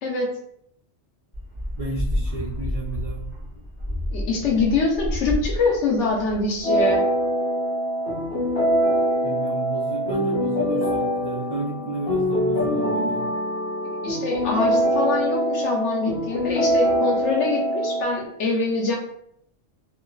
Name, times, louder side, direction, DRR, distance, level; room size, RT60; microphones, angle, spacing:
sound 1, 1.3-6.8, left 1 dB, 30° left, 0.9 m, -30 dB
voice 1, 1.8-3.3 9.2-13.3, right 3 dB, 70° right, -3 dB, 0.3 m, -32 dB
voice 2, 4.1-7.0 13.8-19.0, left 3 dB, 80° left, 0 dB, 1.0 m, -24 dB
sound 2, 6.6-18.2, equal, 60° left, 1.1 m, -23 dB
2.9 x 2.4 x 2.3 m, 0.71 s
omnidirectional pair, 1.2 m